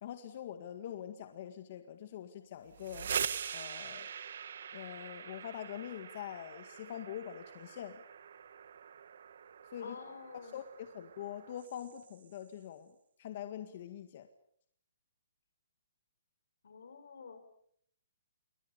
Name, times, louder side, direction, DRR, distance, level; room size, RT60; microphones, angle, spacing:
voice 1, 0.0-3.1 3.5-4.1 4.7-8.0 9.7-10.0 10.4-14.3, left 10 dB, 40° left, 8 dB, 1.9 m, -44 dB
sound 1, 2.6-12.4, right 7 dB, 55° right, 1.6 m, -43 dB
voice 2, 9.8-10.6 16.6-17.4, left 5 dB, 70° left, 9 dB, 6.6 m, -48 dB
28.5 x 23.0 x 6.9 m, 0.67 s
hypercardioid pair, 170°, 0 cm